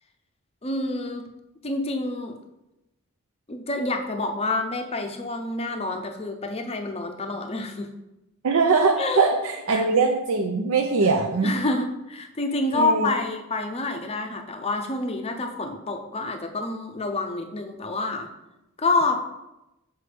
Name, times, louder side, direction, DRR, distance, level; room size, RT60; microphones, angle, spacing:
voice 1, 0.6-1.3 1.6-2.4 3.5-7.9 9.0-9.2 9.7-9.9 11.4-18.3 18.8-19.2, left 2 dB, 25° left, 5 dB, 0.6 m, -28 dB
voice 2, 8.4-11.5 12.7-13.1, right 4 dB, 70° right, 2 dB, 0.5 m, -21 dB
6.8 x 4.4 x 3.3 m, 0.93 s
head